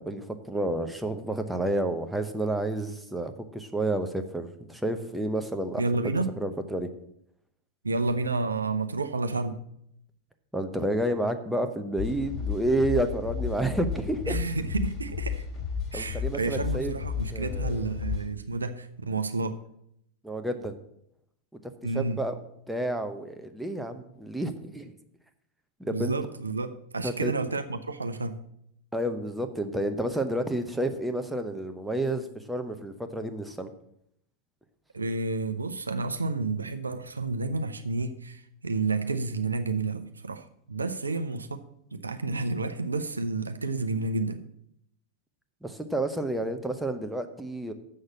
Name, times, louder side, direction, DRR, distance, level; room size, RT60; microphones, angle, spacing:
voice 1, 0.0-5.8 6.4-6.9 10.5-14.4 15.9-16.9 17.3-17.9 20.2-20.8 21.9-22.4 22.7-24.9 25.8-26.1 27.0-27.3 28.9-33.7 45.6-47.7, right 1 dB, 5° right, 7 dB, 0.8 m, -30 dB
voice 2, 5.8-6.3 7.8-9.6 14.2-15.4 15.9-19.6 21.8-22.2 25.9-28.4 34.9-41.6 41.9-44.4, right 3 dB, 75° right, 9 dB, 0.6 m, -30 dB
sound 1, 12.0-18.3, left 7 dB, 30° left, 2.4 m, -33 dB
7.4 x 6.4 x 7.4 m, 0.73 s
figure-of-eight pair, 90°, 0 cm